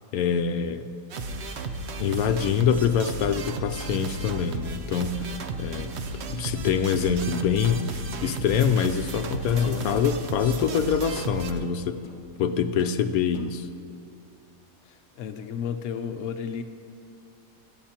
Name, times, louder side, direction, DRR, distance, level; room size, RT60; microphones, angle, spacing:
voice 1, 0.1-0.9 2.0-5.9 6.3-12.0 12.4-13.7, left 7 dB, 90° left, 8 dB, 1.1 m, -25 dB
sound 1, 1.1-11.5, right 3 dB, 55° right, 0.9 m, -34 dB
sound 2, 2.7-2.9 3.2-4.2 4.5-4.8 5.2-6.0 6.6-6.9 7.2-7.8 8.2-9.5 10.6-10.8 11.6-12.5 12.8-13.0 13.3-13.5, left 2 dB, 40° left, 1.0 m, -45 dB
voice 2, 9.5-10.1 14.8-16.6, left 7 dB, 65° left, 7 dB, 1.0 m, -32 dB
25.5 x 9.6 x 2.9 m, 2.5 s
omnidirectional pair, 1.5 m